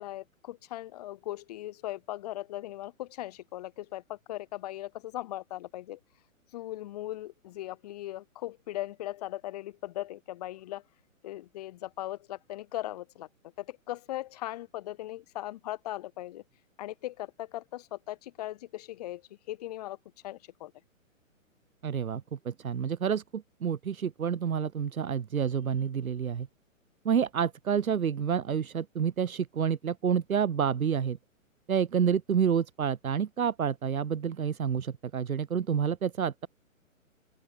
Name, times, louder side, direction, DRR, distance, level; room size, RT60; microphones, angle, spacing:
voice 1, 0.0-6.0 6.5-10.8 11.2-13.3 13.6-16.4 16.8-20.0 20.2-20.7, left 15 dB, 30° left, 0.7 m, -39 dB
voice 2, 21.8-26.5 27.0-31.2 31.7-36.5, right 7 dB, 90° right, 0.6 m, -29 dB
open air
figure-of-eight pair, 125°, 41 cm